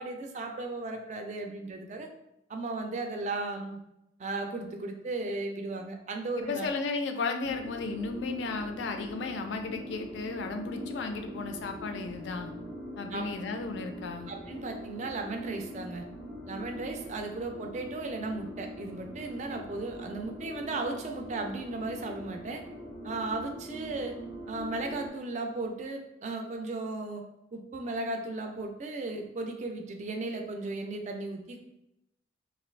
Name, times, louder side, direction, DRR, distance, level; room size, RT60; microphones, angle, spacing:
voice 1, 0.0-2.1 2.5-3.8 4.2-6.7 13.1-13.2 14.3-16.1 16.5-22.6 23.0-24.2 24.5-27.2 27.5-31.6, right 2 dB, 40° right, 4 dB, 0.3 m, -36 dB
voice 2, 6.4-12.5 13.0-14.3, left 4 dB, 70° left, 5 dB, 0.4 m, -34 dB
sound 1, 7.4-25.1, left 1 dB, 15° left, 0.5 m, -43 dB
2.5 x 2.3 x 3.2 m, 0.88 s
head